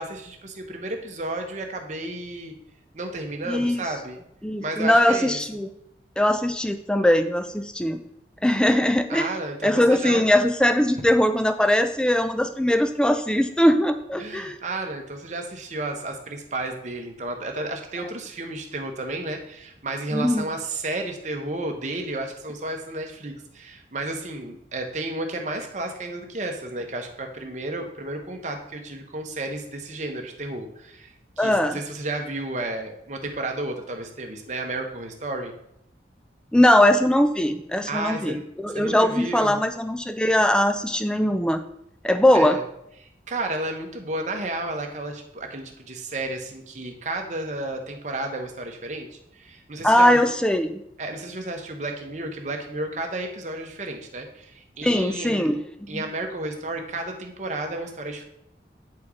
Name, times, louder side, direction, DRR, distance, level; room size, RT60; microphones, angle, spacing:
voice 1, 0.0-2.5 2.9-4.2 4.6-5.4 9.1-10.2 14.2-35.5 37.9-38.5 38.7-39.6 42.3-42.6 43.0-49.1 49.3-50.3 51.0-55.5 55.9-58.2, right 2 dB, 40° right, 3 dB, 1.0 m, -32 dB
voice 2, 3.5-3.8 4.4-5.7 6.2-8.0 8.4-9.3 9.6-14.6 20.1-20.5 31.4-31.8 36.5-41.6 42.0-42.6 49.8-50.8 54.8-55.6 55.9-56.0, left 1 dB, 5° left, 9 dB, 0.4 m, -20 dB
8.5 x 4.4 x 4.9 m, 0.77 s
head